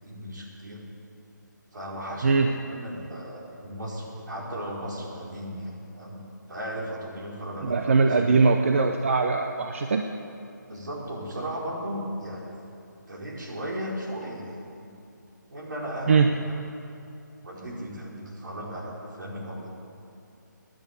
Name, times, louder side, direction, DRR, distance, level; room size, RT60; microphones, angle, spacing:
voice 1, 0.0-0.8 1.7-6.2 6.5-8.1 10.7-12.4 13.1-14.9 15.5-16.6 17.4-19.7, equal, 70° right, -3 dB, 4.5 m, -36 dB
voice 2, 7.6-10.1 16.1-16.3, right 4 dB, 40° right, 5 dB, 0.7 m, -21 dB
15.5 x 10.5 x 8.2 m, 2.6 s
hypercardioid pair, 170°, 10 cm